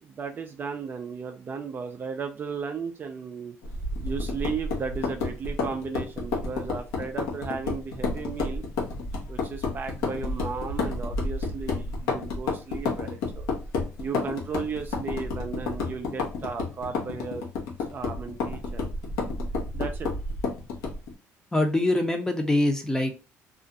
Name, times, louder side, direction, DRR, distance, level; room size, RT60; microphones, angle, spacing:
voice 1, 0.0-3.6 4.0-8.6 9.3-13.5 14.0-17.4 17.9-18.9 19.7-20.1, right 5 dB, 35° right, 5 dB, 0.3 m, -35 dB
sound 1, 3.6-21.1, left 3 dB, 75° left, 0.8 m, -31 dB
voice 2, 21.5-23.1, left 1 dB, 10° left, 5 dB, 0.6 m, -24 dB
2.4 x 2.1 x 2.6 m, 0.31 s
supercardioid pair, 90°, 6 cm